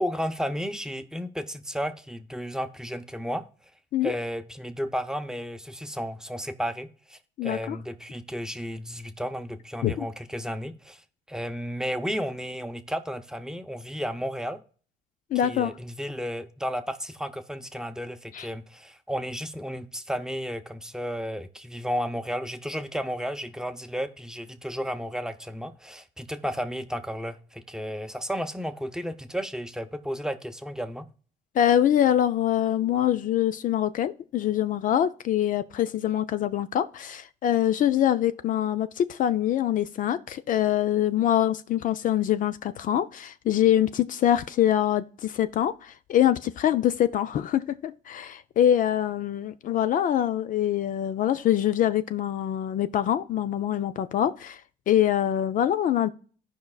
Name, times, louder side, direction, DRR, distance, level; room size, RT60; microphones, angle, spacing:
voice 1, 0.0-3.4 4.0-11.0 11.3-14.6 15.4-31.1, equal, 5° right, 0.7 m, -33 dB
voice 2, 7.4-7.8 9.8-10.0 15.3-15.7 18.3-18.5 31.6-54.6 54.9-56.1, left 11 dB, 50° left, 0.5 m, -24 dB
15.5 x 5.3 x 2.4 m
cardioid pair, 110°, 17 cm